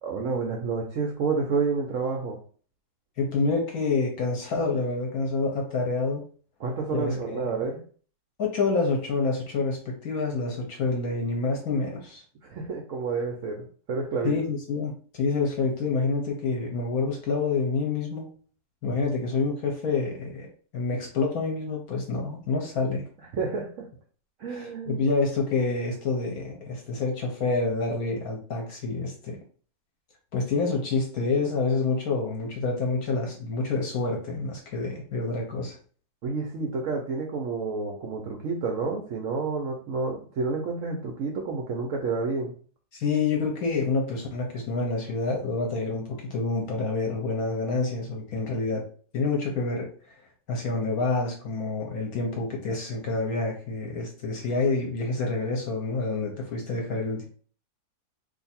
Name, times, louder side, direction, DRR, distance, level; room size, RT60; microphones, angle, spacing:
voice 1, 0.0-2.4 6.6-7.8 12.4-14.3 23.3-23.9 24.4-25.0 36.2-42.5, right 4 dB, 75° right, 1 dB, 0.7 m, -29 dB
voice 2, 3.2-6.2 6.9-7.6 8.4-12.2 14.2-18.3 18.8-23.1 24.5-29.4 30.3-35.8 42.9-46.0 46.3-48.8 49.1-49.9 50.5-57.3, left 3 dB, 60° left, 1 dB, 1.0 m, -27 dB
2.8 x 2.5 x 4.2 m, 0.43 s
omnidirectional pair, 2.1 m